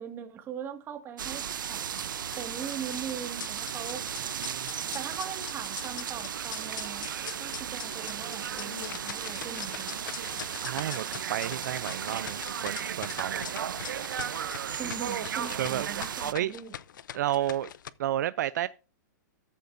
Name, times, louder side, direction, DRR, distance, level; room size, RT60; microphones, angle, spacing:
voice 1, 0.0-1.8 2.4-4.1 4.9-9.9 14.7-16.7, right 8 dB, 20° right, 1.9 m, -40 dB
sound 1, 1.2-16.3, right 8 dB, 90° right, 0.7 m, -35 dB
sound 2, 1.9-17.9, left 10 dB, 75° left, 0.6 m, -43 dB
voice 2, 10.6-13.5 15.5-15.8 16.3-16.5 17.1-17.7 18.0-18.7, right 12 dB, 65° right, 0.4 m, -31 dB
14.0 x 8.1 x 2.6 m
hypercardioid pair, 150°, 10 cm